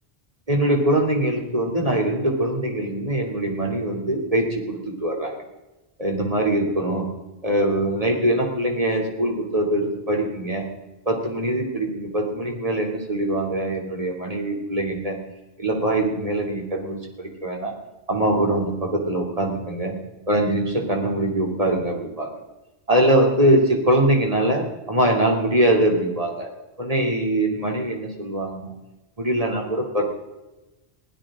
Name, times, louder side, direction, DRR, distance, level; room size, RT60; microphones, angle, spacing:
voice 1, 0.5-5.4 6.0-7.1 7.4-10.6 11.0-15.2 15.6-17.7 18.1-19.9 20.3-22.3 22.9-26.5 26.8-28.7 29.2-30.0, right 1 dB, 35° right, 1 dB, 3.2 m, -22 dB
22.0 x 16.5 x 3.8 m, 1.1 s
omnidirectional pair, 1.1 m